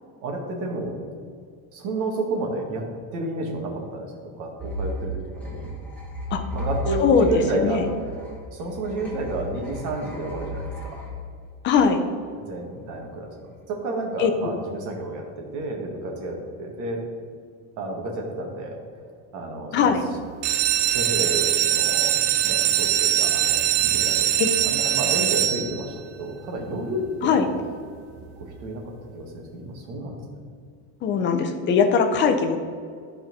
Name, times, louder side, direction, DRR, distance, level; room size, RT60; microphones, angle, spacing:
voice 1, 0.2-1.0 1.7-5.7 6.5-7.8 8.5-11.0 12.4-17.0 17.8-18.8 19.3-19.9 20.9-24.4 24.6-27.4 28.2-30.4, right 2 dB, 50° right, 1 dB, 1.8 m, -31 dB
sound 1, 4.6-12.1, equal, 5° left, 1.1 m, -34 dB
voice 2, 7.0-7.9 11.6-12.0 14.2-14.3 19.7-20.1 24.4-24.5 27.2-27.5 31.0-32.6, left 5 dB, 30° left, 6 dB, 0.6 m, -20 dB
sound 2, 20.3-26.0 26.7-27.1 27.5-27.6 27.9-28.0 28.4-28.5, right 11 dB, 70° right, 0.8 m, -22 dB
12.0 x 4.4 x 5.3 m, 2.2 s
cardioid pair, 175°, 40 cm